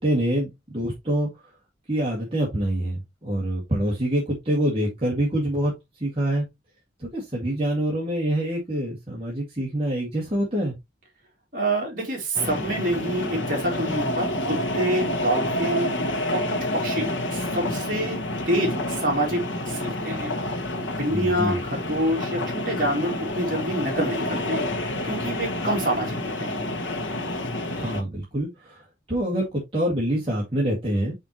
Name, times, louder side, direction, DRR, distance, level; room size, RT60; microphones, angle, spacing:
voice 1, 0.0-1.3 1.9-5.7 6.0-6.4 7.0-10.7 21.1-21.6 27.7-31.2, right 1 dB, 30° right, 2.0 m, -26 dB
voice 2, 11.5-15.9 16.3-18.2 18.5-19.4 19.6-20.4 20.8-24.6 25.0-26.6, right 1 dB, 45° right, 3.2 m, -27 dB
sound 1, 12.3-28.0, left 1 dB, 85° left, 1.2 m, -29 dB
5.7 x 5.7 x 3.0 m
head